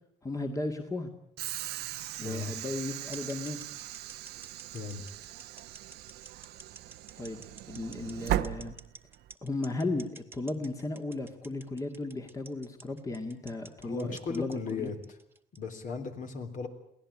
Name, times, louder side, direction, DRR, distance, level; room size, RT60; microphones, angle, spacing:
voice 1, 0.2-1.1 2.2-3.6 7.2-8.7 9.4-14.9, left 2 dB, 20° left, 4 dB, 2.0 m, -35 dB
Train / Sliding door, 1.4-9.3, right 13 dB, 75° right, 1.0 m, -38 dB
voice 2, 2.2-2.5 4.7-5.0 13.8-15.0 15.6-16.7, left 5 dB, 50° left, 6 dB, 3.6 m, -36 dB
sound 1, 3.1-15.7, right 3 dB, 15° right, 1.5 m, -50 dB
23.0 x 17.0 x 8.7 m, 0.72 s
cardioid pair, 110°, 17 cm